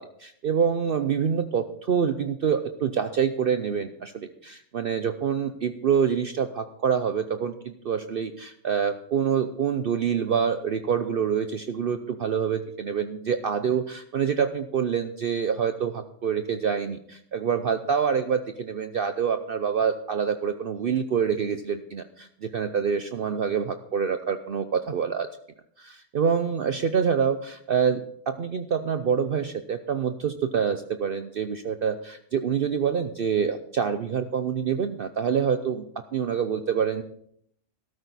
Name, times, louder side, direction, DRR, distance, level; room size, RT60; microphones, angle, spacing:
voice 1, 0.0-25.3 25.8-35.8 36.1-37.0, right 7 dB, 55° right, 9 dB, 0.8 m, -26 dB
13.5 x 12.5 x 4.1 m, 0.68 s
omnidirectional pair, 1.3 m